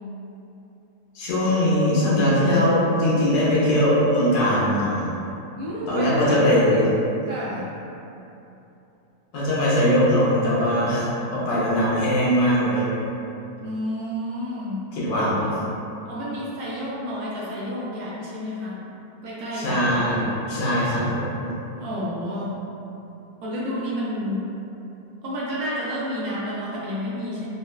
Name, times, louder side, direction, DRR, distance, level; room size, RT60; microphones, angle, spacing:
voice 1, 1.1-5.1 5.9-6.9 9.3-12.8 14.9-15.6 19.5-21.5, equal, 85° left, -8 dB, 1.5 m, -21 dB
voice 2, 5.6-6.2 6.4-6.9 7.3-7.8 13.6-14.9 16.1-18.8 19.2-20.0 21.8-22.6 23.4-24.5 25.2-27.5, equal, 70° right, -7 dB, 1.0 m, -30 dB
4.1 x 2.1 x 2.3 m, 2.9 s
omnidirectional pair, 1.9 m